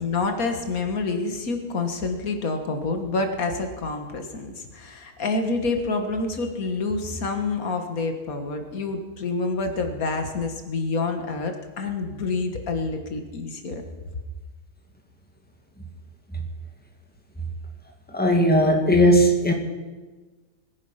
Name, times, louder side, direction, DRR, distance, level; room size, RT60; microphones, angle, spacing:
voice 1, 0.0-13.8, left 3 dB, 75° left, 5 dB, 2.0 m, -27 dB
voice 2, 18.1-19.5, equal, 5° left, 2 dB, 1.9 m, -17 dB
21.5 x 10.0 x 5.7 m, 1.3 s
omnidirectional pair, 1.5 m